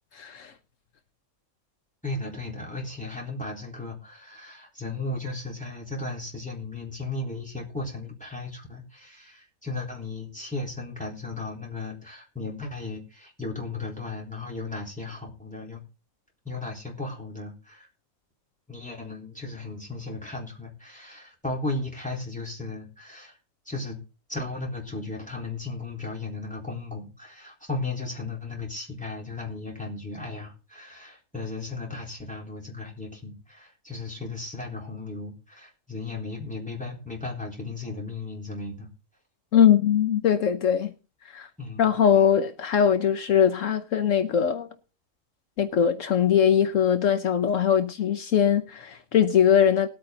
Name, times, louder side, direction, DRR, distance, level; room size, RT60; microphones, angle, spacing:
voice 1, 0.1-0.5 39.5-40.9 41.3-41.5 41.8-44.7 45.6-49.9, left 8 dB, 70° left, 1.2 m, -21 dB
voice 2, 2.0-15.8 16.4-17.9 18.7-23.4 23.7-24.0 24.3-38.9 41.6-41.9, left 3 dB, 5° left, 3.9 m, -35 dB
19.5 x 8.8 x 3.9 m
omnidirectional pair, 1.4 m